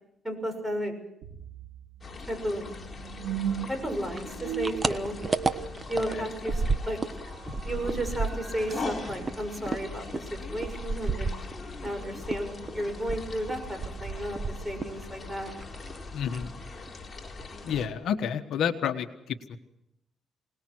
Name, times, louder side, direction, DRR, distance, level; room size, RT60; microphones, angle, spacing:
voice 1, 0.2-0.9 2.2-2.7 3.7-5.2 5.9-7.0 7.6-11.3 11.8-15.5, equal, 10° right, 6 dB, 6.6 m, -33 dB
sound 1, 1.2-10.3, right 10 dB, 90° right, 4.1 m, -40 dB
sound 2, 2.0-17.9, left 3 dB, 30° left, 4.2 m, -41 dB
sound 3, 4.1-7.2 7.4-11.9 12.3-15.0 15.3-16.0 16.3-16.5 16.9-17.0 17.2-17.8, right 3 dB, 30° right, 1.2 m, -32 dB
voice 2, 16.1-16.5 17.7-19.6, left 8 dB, 75° left, 7 dB, 1.4 m, -30 dB
25.5 x 19.5 x 6.3 m, 0.80 s
cardioid pair, 90°, 0 cm